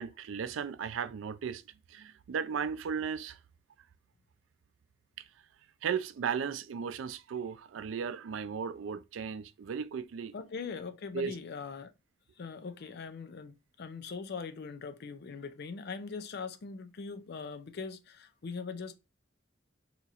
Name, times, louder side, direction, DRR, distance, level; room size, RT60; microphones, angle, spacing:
voice 1, 0.0-1.6 1.9-3.4 5.8-10.3 11.1-11.4, right 7 dB, 85° right, 0.4 m, -36 dB
voice 2, 10.3-11.9 12.4-19.0, left 5 dB, 55° left, 0.5 m, -41 dB
2.8 x 2.5 x 4.1 m
head